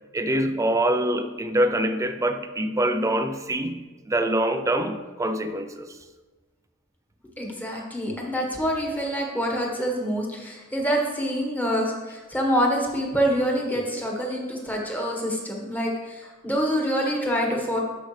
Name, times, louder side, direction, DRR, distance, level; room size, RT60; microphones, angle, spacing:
voice 1, 0.1-3.8 4.1-6.0, right 1 dB, 15° right, 8 dB, 0.5 m, -24 dB
voice 2, 7.4-17.8, equal, 10° left, -1 dB, 1.4 m, -26 dB
13.0 x 5.1 x 3.3 m, 1.3 s
head